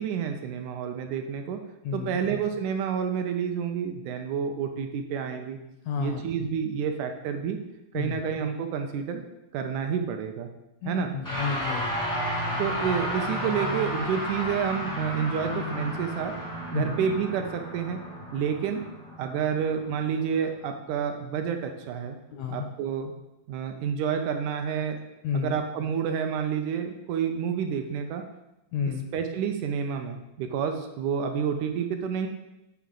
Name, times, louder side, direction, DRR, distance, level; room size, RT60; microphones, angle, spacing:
voice 1, 0.0-1.6 1.9-5.6 6.0-7.6 7.9-9.2 9.5-10.5 10.9-11.1 12.6-16.3 16.7-18.0 18.3-18.9 19.2-22.2 22.5-23.1 23.5-25.0 25.3-28.2 29.1-32.3, right 7 dB, 80° right, 5 dB, 2.0 m, -29 dB
voice 2, 1.8-2.2 5.8-6.5 7.9-8.2 10.8-11.9 16.7-17.0 22.3-22.7 25.2-25.6 28.7-29.0, left 6 dB, 85° left, 3 dB, 1.6 m, -31 dB
sound 1, 11.2-20.7, equal, 20° left, 0.5 m, -32 dB
8.4 x 4.6 x 3.8 m, 0.90 s
omnidirectional pair, 3.7 m